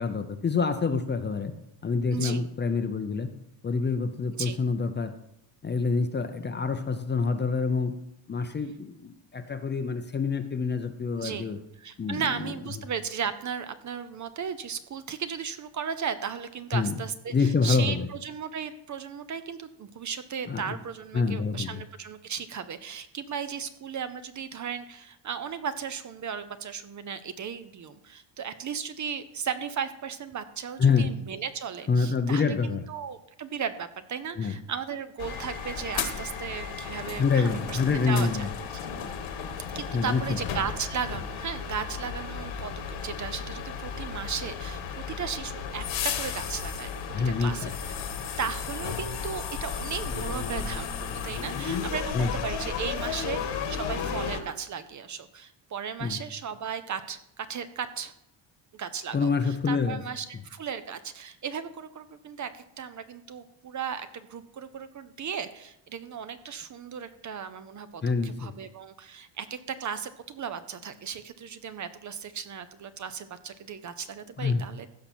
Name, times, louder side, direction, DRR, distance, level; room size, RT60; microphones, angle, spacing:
voice 1, 0.0-1.5 1.8-3.3 3.6-5.1 5.6-7.9 8.3-11.6 12.0-12.5 16.7-17.0 17.3-18.1 20.5-20.8 21.1-21.8 30.8-31.1 31.9-32.8 34.4-34.5 37.2-38.5 39.9-40.2 47.1-47.7 52.1-52.3 56.0-56.2 59.1-60.0 68.0-68.5 74.4-74.6, left 4 dB, 20° left, 8 dB, 0.6 m, -26 dB
voice 2, 2.1-2.4 4.4-4.6 11.2-11.5 11.8-37.8 38.0-38.5 39.7-44.8 45.2-45.8 46.2-46.9 47.2-47.9 48.4-53.4 53.7-58.1 58.7-74.9, right 7 dB, 40° right, 11 dB, 0.6 m, -36 dB
sound 1, 35.2-54.4, left 6 dB, 70° left, 1.6 m, -34 dB
15.5 x 5.8 x 4.3 m, 0.78 s
cardioid pair, 145°, 49 cm